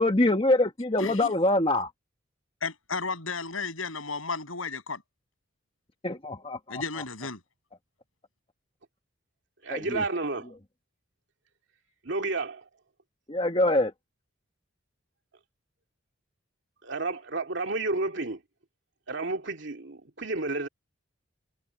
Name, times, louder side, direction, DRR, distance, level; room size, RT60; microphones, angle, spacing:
voice 1, 0.0-1.9 6.0-6.8 9.7-10.0 13.3-13.9, left 1 dB, 25° left, 1.4 m, -24 dB
voice 2, 1.0-1.3 2.6-5.0 6.7-7.4, left 4 dB, 85° left, 7.6 m, -33 dB
voice 3, 9.6-10.5 12.0-12.7 16.8-18.4 19.1-20.7, right 3 dB, 60° right, 2.5 m, -31 dB
head